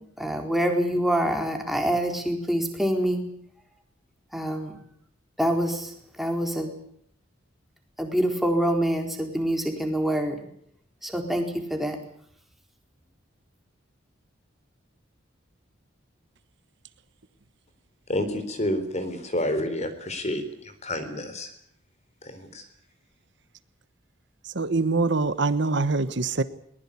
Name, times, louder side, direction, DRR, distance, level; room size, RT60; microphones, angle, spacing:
voice 1, 0.2-3.2 4.3-4.7 5.4-5.9 6.2-6.7 8.0-10.4 11.0-12.0, equal, ahead, 4.2 m, -25 dB
voice 2, 18.1-21.5 22.2-22.7, left 1 dB, 35° left, 3.9 m, -29 dB
voice 3, 24.5-26.4, right 3 dB, 65° right, 1.2 m, -24 dB
21.5 x 20.5 x 8.5 m
head